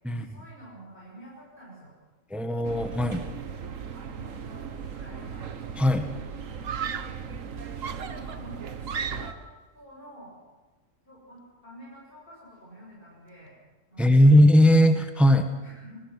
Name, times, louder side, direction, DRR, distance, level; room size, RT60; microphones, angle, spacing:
voice 1, 0.1-1.9 4.1-5.4 6.8-7.2 8.0-9.4 9.7-10.4 11.1-13.5 13.9-14.4 15.6-16.1, equal, 45° left, -6 dB, 7.3 m, -48 dB
voice 2, 2.3-3.2 5.8-6.1 14.0-15.5, equal, ahead, 6 dB, 1.4 m, -18 dB
sound 1, 2.6-9.3, right 6 dB, 85° right, 1.7 m, -38 dB
Screaming, 5.3-5.5 6.6-7.3 7.8-9.6, right 7 dB, 55° right, 1.1 m, -35 dB
27.0 x 20.5 x 6.2 m, 1.2 s
omnidirectional pair, 1.3 m